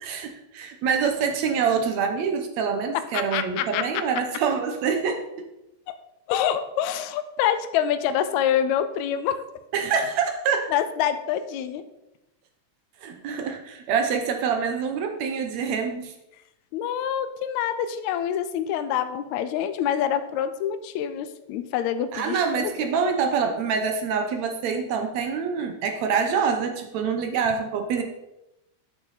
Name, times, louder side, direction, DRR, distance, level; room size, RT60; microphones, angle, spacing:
voice 1, 0.0-5.2 9.7-10.7 13.0-16.1 22.1-28.0, right 6 dB, 70° right, 5 dB, 1.8 m, -26 dB
voice 2, 2.9-4.0 5.9-6.0 6.3-9.4 10.7-11.8 16.7-22.7, left 9 dB, 90° left, 10 dB, 1.6 m, -26 dB
9.0 x 8.3 x 4.1 m, 0.91 s
omnidirectional pair, 3.9 m